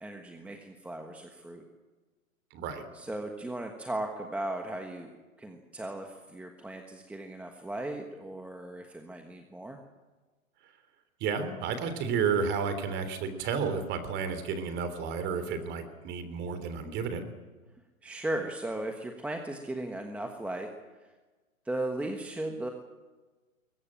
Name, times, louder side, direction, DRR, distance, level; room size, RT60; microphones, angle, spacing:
voice 1, 0.0-1.6 2.9-5.1 5.4-9.8 18.0-20.7 21.6-22.7, right 1 dB, 5° right, 3 dB, 1.3 m, -36 dB
voice 2, 2.5-2.8 11.2-17.2, right 6 dB, 25° right, 10 dB, 3.4 m, -31 dB
22.5 x 19.0 x 8.8 m, 1.2 s
hypercardioid pair, 140°, 42 cm